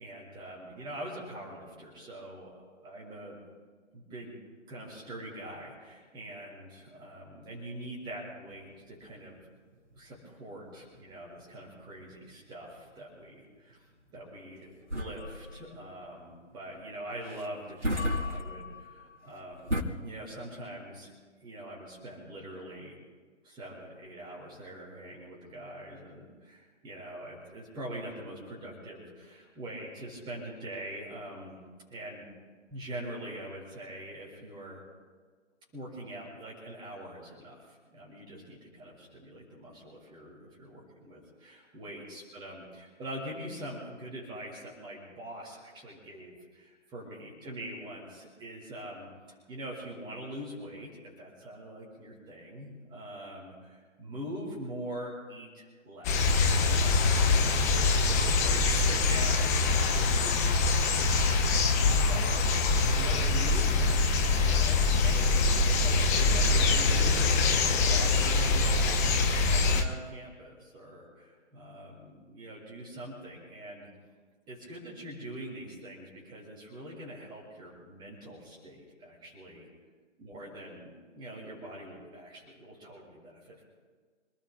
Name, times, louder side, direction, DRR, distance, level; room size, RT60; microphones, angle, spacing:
voice 1, 0.0-3.4 3.9-4.4 4.7-9.4 9.9-13.8 14.1-14.7 14.9-19.7 20.0-21.1 21.4-23.0 23.4-31.6 31.9-32.3 32.7-34.8 35.7-57.5 57.9-61.3 61.6-62.5 62.9-73.9 74.5-79.7 80.2-83.6, right 1 dB, 10° right, -3 dB, 6.4 m, -43 dB
sound 1, 8.5-19.8, left 1 dB, 75° right, 4.0 m, -37 dB
sound 2, 56.0-69.8, left 3 dB, 15° left, 0.8 m, -24 dB
28.5 x 20.0 x 2.3 m, 1.5 s
figure-of-eight pair, 140°, 36 cm